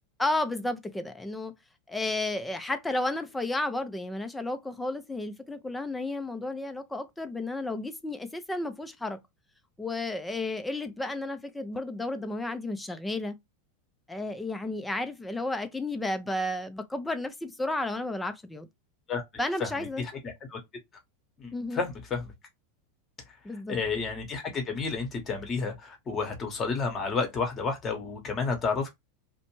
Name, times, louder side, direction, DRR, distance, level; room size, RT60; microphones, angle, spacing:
voice 1, 0.2-1.5 1.9-9.2 9.8-13.4 14.1-18.7 19.4-20.0 21.5-21.8 23.4-23.8, left 2 dB, 10° left, 0.5 m, -32 dB
voice 2, 19.6-20.6 21.4-22.3 23.7-28.9, left 4 dB, 30° left, 1.0 m, -31 dB
2.5 x 2.1 x 3.0 m
hypercardioid pair, 90°, 0 cm